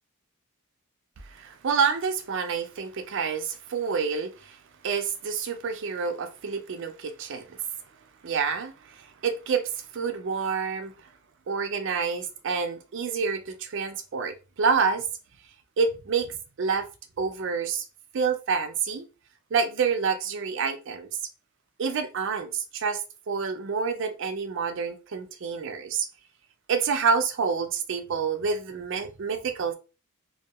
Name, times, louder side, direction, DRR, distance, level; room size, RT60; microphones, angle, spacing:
voice 1, 1.2-4.6 4.8-7.6 8.2-10.9 11.5-15.1 15.8-16.9 17.2-17.8 18.1-19.1 19.5-21.1 21.8-23.0 23.3-26.1 26.7-29.7, right 5 dB, 55° right, 0.4 m, -28 dB
2.7 x 2.3 x 2.3 m
head